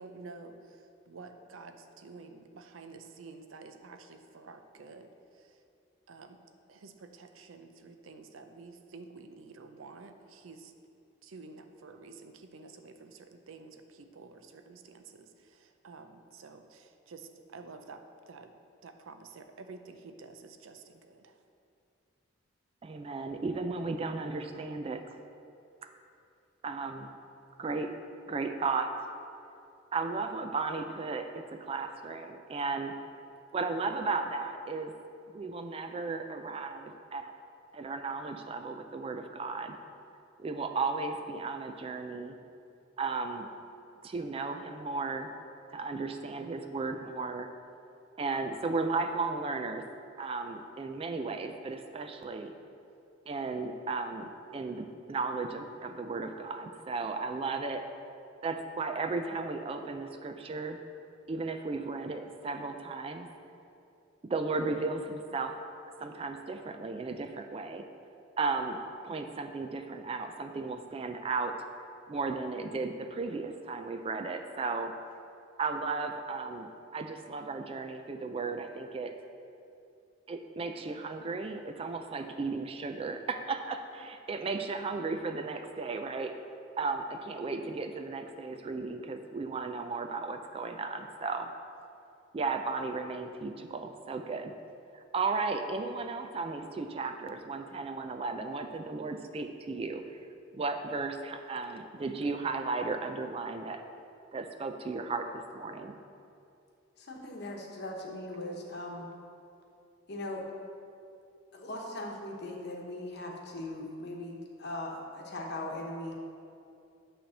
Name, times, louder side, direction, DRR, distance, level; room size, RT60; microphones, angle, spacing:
voice 1, 0.0-5.6 6.1-6.4 6.7-10.7 11.2-18.5 18.8-21.4, right 4 dB, 80° right, 7 dB, 0.5 m, -50 dB
voice 2, 22.8-25.2 26.6-27.1 27.6-27.9 28.3-28.9 29.9-32.9 33.5-34.9 35.3-37.3 37.7-39.8 40.4-42.4 43.0-43.5 44.0-45.3 45.7-47.5 48.2-49.8 50.2-52.5 53.3-57.8 58.4-60.8 61.3-63.3 64.2-65.6 66.0-67.8 68.4-68.8 69.0-71.6 72.1-74.9 75.6-79.1 80.3-86.3 86.8-91.5 92.3-94.5 94.9-100.0 100.5-103.8 104.3-106.0, right 4 dB, 30° right, 7 dB, 0.3 m, -35 dB
voice 3, 107.0-109.1 110.1-110.5 111.5-116.1, left 1 dB, 55° left, 0 dB, 1.0 m, -39 dB
8.7 x 3.3 x 6.3 m, 2.6 s
head